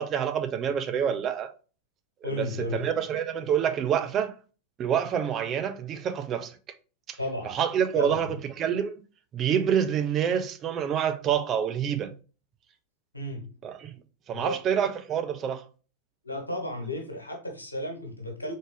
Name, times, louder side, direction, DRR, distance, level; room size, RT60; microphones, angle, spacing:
voice 1, 0.0-1.5 2.4-4.3 4.8-6.6 7.1-7.2 7.4-8.9 9.3-12.1 13.6-13.9 14.3-15.6, right 8 dB, 30° right, 0.5 m, -27 dB
voice 2, 2.2-2.8 7.2-7.5 8.0-8.3 13.1-13.5 14.3-14.6 16.2-18.5, left 1 dB, 80° left, 1.3 m, -33 dB
3.9 x 3.6 x 3.4 m
figure-of-eight pair, 90°, 0 cm